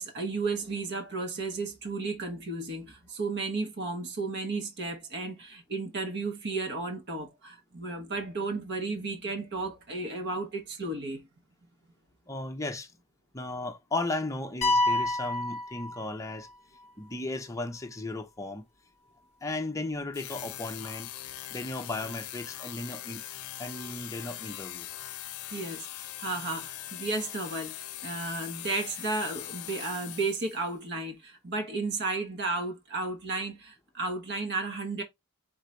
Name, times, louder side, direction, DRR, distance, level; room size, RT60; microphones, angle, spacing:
voice 1, 0.0-11.2 25.5-35.0, right 3 dB, 55° right, 1.0 m, -33 dB
voice 2, 12.3-12.9 13.3-16.5 17.0-18.6 19.4-21.1 21.5-23.2 23.6-24.9, left 2 dB, 15° left, 0.6 m, -35 dB
sound 1, 14.6-16.5, left 2 dB, 35° left, 0.9 m, -28 dB
sound 2, 20.1-30.7, left 13 dB, 90° left, 0.5 m, -41 dB
3.9 x 3.7 x 3.1 m
head